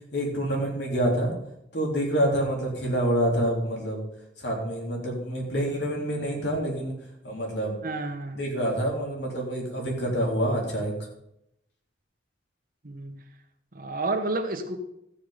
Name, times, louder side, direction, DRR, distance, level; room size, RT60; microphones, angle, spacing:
voice 1, 0.1-1.3 1.7-4.0 4.4-6.9 7.2-7.7 8.4-10.9, right 1 dB, 65° left, 0 dB, 3.4 m, -27 dB
voice 2, 7.8-8.4 12.8-13.2 13.7-14.8, right 2 dB, 50° right, 6 dB, 1.3 m, -30 dB
13.5 x 8.0 x 5.0 m, 0.79 s
head